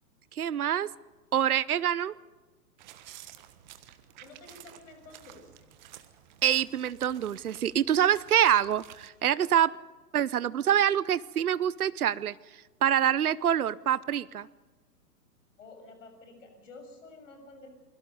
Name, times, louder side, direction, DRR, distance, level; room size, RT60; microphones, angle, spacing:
voice 1, 0.4-0.9 1.3-2.1 6.4-9.8 10.1-12.3 12.8-14.5, right 10 dB, 65° right, 20 dB, 0.7 m, -25 dB
sound 1, 2.8-9.1, right 12 dB, 30° right, 1.3 m, -52 dB
voice 2, 4.2-5.8 15.6-17.7, left 3 dB, 50° left, 5 dB, 6.6 m, -50 dB
28.5 x 22.0 x 5.3 m, 1.3 s
figure-of-eight pair, 120°, 48 cm